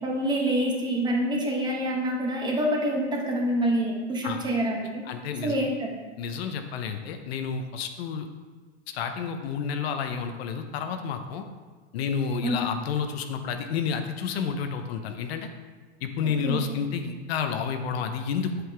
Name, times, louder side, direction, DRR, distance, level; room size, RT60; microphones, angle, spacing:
voice 1, 0.0-5.0 5.4-5.9 12.4-12.6 16.2-16.6, right 1 dB, 10° right, 0 dB, 0.9 m, -26 dB
voice 2, 5.1-5.6 6.2-8.3 8.9-11.5 11.9-15.5 16.0-18.6, left 6 dB, 60° left, 7 dB, 0.8 m, -30 dB
7.8 x 7.8 x 3.4 m, 1.4 s
supercardioid pair, 155°, 35 cm